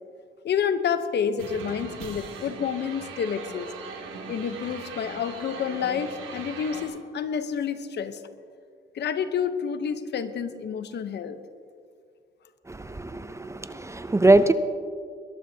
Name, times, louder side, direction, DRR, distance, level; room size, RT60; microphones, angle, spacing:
voice 1, 0.4-3.7 4.3-8.2 8.9-11.4, left 7 dB, 60° left, 10 dB, 0.9 m, -29 dB
sound 1, 1.4-6.8, right 5 dB, 80° right, 2.3 m, -40 dB
voice 2, 12.7-14.5, right 2 dB, 15° right, 11 dB, 0.6 m, -22 dB
21.5 x 14.0 x 2.8 m, 2.2 s
cardioid pair, 90°, 20 cm